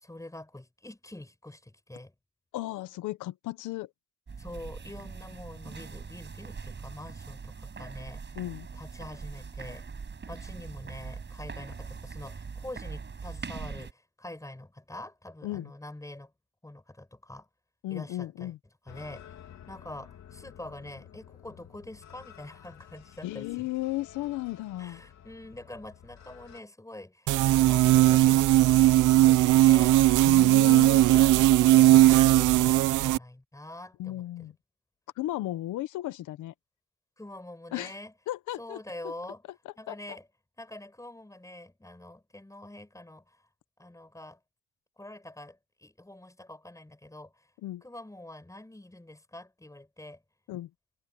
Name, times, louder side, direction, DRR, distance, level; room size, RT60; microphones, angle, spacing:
voice 1, 0.0-2.1 4.4-8.4 8.7-9.9 10.3-16.3 16.6-17.5 17.9-18.5 18.9-19.3 19.7-23.7 24.8-30.0 30.8-34.5 37.2-38.1 38.6-39.4 39.8-40.3 40.6-43.4 43.8-44.4 45.0-47.5 47.8-50.2, left 1 dB, 10° left, 5.1 m, -45 dB
voice 2, 2.5-3.9 8.4-8.7 15.4-15.7 17.8-18.6 23.2-25.0 30.2-31.0 34.0-34.5 35.2-36.5 37.7-37.9 38.3-39.1 39.6-39.9 47.6-47.8 50.5-50.7, left 16 dB, 90° left, 0.9 m, -35 dB
sound 1, 4.3-13.9, right 5 dB, 35° right, 8.0 m, -42 dB
sound 2, 18.9-26.6, left 9 dB, 65° left, 3.7 m, -51 dB
sound 3, 27.3-33.2, right 15 dB, 85° right, 0.8 m, -19 dB
cardioid pair, 90°, 30 cm